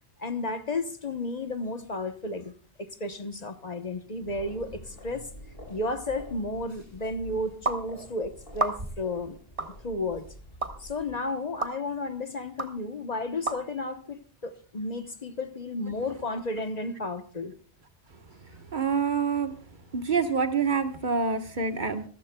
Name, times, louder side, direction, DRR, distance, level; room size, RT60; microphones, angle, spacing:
voice 1, 0.2-5.3 5.7-9.4 9.8-10.3 10.8-17.5, left 2 dB, 45° left, 1.1 m, -33 dB
sound 1, 4.2-11.2, equal, 65° left, 7.7 m, -47 dB
sound 2, 7.7-7.8 8.5-9.0 9.6-9.7 10.6-10.7 11.6-11.7 12.6-12.7 13.5-13.6, right 3 dB, 35° right, 1.3 m, -29 dB
voice 2, 18.7-19.6 19.9-22.1, right 5 dB, 50° right, 1.4 m, -26 dB
26.5 x 14.5 x 2.2 m
omnidirectional pair, 1.0 m